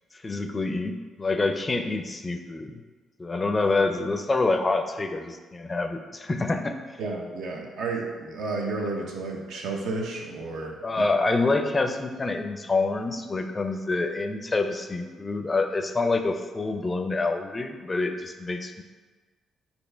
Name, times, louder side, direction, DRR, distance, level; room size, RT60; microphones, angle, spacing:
voice 1, 0.2-2.8 3.2-6.8 10.8-18.8, left 3 dB, 25° left, 7 dB, 0.4 m, -27 dB
voice 2, 7.0-11.0, right 3 dB, 75° right, 1 dB, 0.7 m, -32 dB
4.3 x 2.7 x 4.4 m, 1.4 s
cardioid pair, 90°, 0 cm